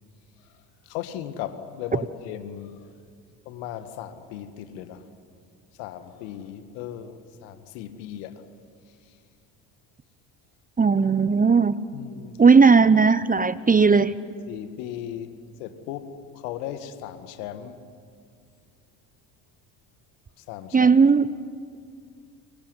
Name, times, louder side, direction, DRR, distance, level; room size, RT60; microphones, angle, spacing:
voice 1, 0.8-2.9 3.5-5.1 5.8-8.4 11.9-12.4 14.5-17.8 20.4-20.9, left 10 dB, 70° left, 1.9 m, -37 dB
voice 2, 10.8-11.7 12.4-14.2 20.7-21.2, right 5 dB, 15° right, 0.8 m, -17 dB
25.0 x 23.5 x 9.8 m
hypercardioid pair, 60°, 49 cm